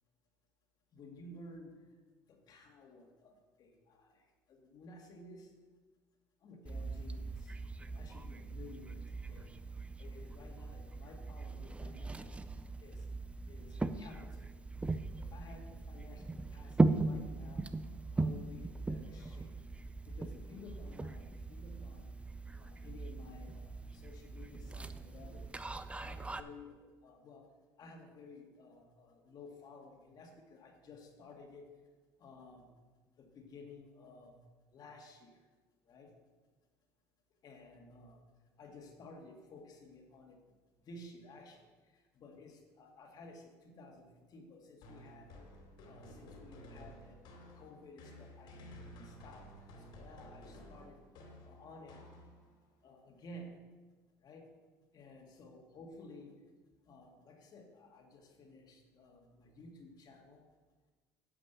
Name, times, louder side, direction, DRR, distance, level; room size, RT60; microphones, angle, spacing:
voice 1, 0.9-1.7 2.3-4.2 4.5-5.5 6.4-7.5 7.9-9.5 10.0-12.4 12.8-13.0 13.5-14.5 15.2-17.7 18.1-19.5 20.0-22.1 22.6-25.5 25.9-27.5 27.8-31.7 32.2-32.7 33.2-34.3 34.7-35.4 35.9-36.1 37.4-38.2 38.6-40.4 40.8-41.7 41.9-45.3 45.9-49.5 49.8-51.1 51.4-52.0 52.8-53.5 54.2-54.5 54.9-56.4 56.9-60.5, left 2 dB, 50° left, 2 dB, 2.1 m, -54 dB
sound 1, 6.7-26.4, right 3 dB, 15° right, 0.6 m, -39 dB
sound 2, 44.8-52.6, equal, 65° left, 2.9 m, -54 dB
10.0 x 5.9 x 6.9 m, 1.3 s
supercardioid pair, 80°, 9 cm